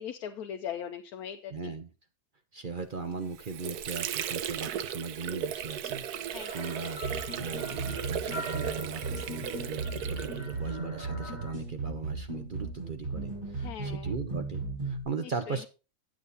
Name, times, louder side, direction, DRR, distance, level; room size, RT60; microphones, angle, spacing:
voice 1, 0.0-1.7 6.3-6.9 13.6-14.1 15.2-15.6, left 8 dB, 70° left, 5 dB, 1.1 m, -40 dB
voice 2, 1.5-1.9 2.5-7.0 7.4-15.7, right 5 dB, 50° right, 7 dB, 0.6 m, -38 dB
Water / Sink (filling or washing), 3.1-10.7, right 9 dB, 75° right, 1.2 m, -36 dB
sound 1, 6.4-11.5, left 1 dB, 25° left, 3.9 m, -45 dB
sound 2, 7.0-15.0, right 3 dB, 30° right, 5.3 m, -37 dB
9.6 x 7.4 x 4.0 m, 0.31 s
omnidirectional pair, 1.7 m